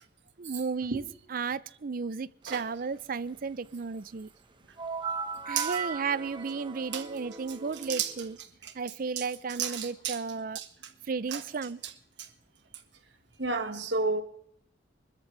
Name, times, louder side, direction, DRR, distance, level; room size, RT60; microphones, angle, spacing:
voice 1, 0.4-1.0 1.3-4.3 5.5-8.4 8.8-10.6 11.1-11.8, right 5 dB, 50° right, 0.5 m, -34 dB
sound 1, 4.8-8.4, right 5 dB, 25° right, 1.2 m, -37 dB
voice 2, 9.6-10.2 10.6-10.7 11.3-11.4 13.4-14.2, right 5 dB, 75° right, 1.8 m, -31 dB
24.5 x 13.5 x 3.4 m
head